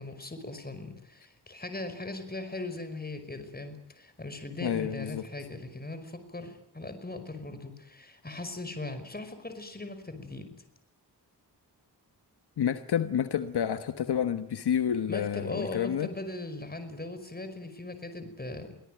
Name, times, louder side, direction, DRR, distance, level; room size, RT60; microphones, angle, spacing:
voice 1, 0.0-10.5 15.1-18.8, left 2 dB, 25° left, 9 dB, 5.3 m, -39 dB
voice 2, 4.6-5.2 12.6-16.1, left 9 dB, 75° left, 10 dB, 1.4 m, -29 dB
23.5 x 17.5 x 9.2 m, 0.79 s
cardioid pair, 70°, 40 cm